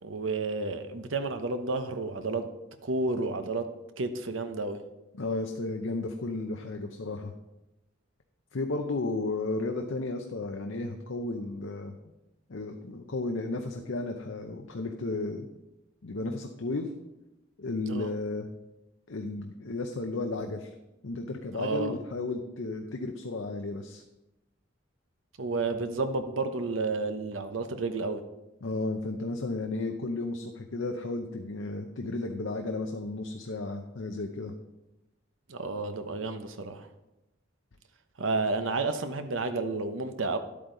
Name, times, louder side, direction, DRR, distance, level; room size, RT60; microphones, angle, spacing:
voice 1, 0.0-2.5 2.8-3.7 4.0-4.8 17.9-18.1 21.6-22.0 25.4-28.2 35.5-36.9 38.2-40.4, right 3 dB, 80° right, 8 dB, 0.9 m, -31 dB
voice 2, 5.1-7.3 8.5-12.0 12.5-15.5 16.0-16.9 17.6-18.5 19.1-20.7 21.0-24.0 28.6-34.5, left 2 dB, 75° left, 4 dB, 0.7 m, -33 dB
11.5 x 8.6 x 3.9 m, 0.97 s
head